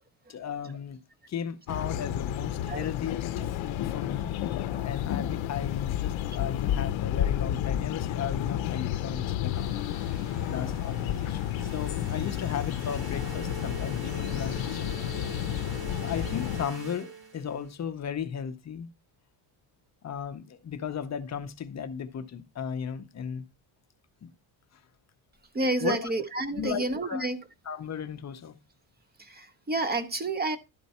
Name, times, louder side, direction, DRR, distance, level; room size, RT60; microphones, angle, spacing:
voice 1, 0.3-1.0 1.3-10.2 10.5-14.9 16.0-18.9 20.0-23.4 24.2-24.3 25.8-26.0 26.5-27.3 27.7-28.6, left 7 dB, 35° left, 0.6 m, -36 dB
sound 1, 1.7-16.7, left 11 dB, 70° left, 0.6 m, -31 dB
sound 2, 9.4-17.7, right 5 dB, 60° right, 1.9 m, -44 dB
voice 2, 25.5-27.4 29.2-30.6, right 2 dB, 20° right, 0.7 m, -30 dB
11.5 x 4.5 x 4.1 m
cardioid pair, 170°, 48 cm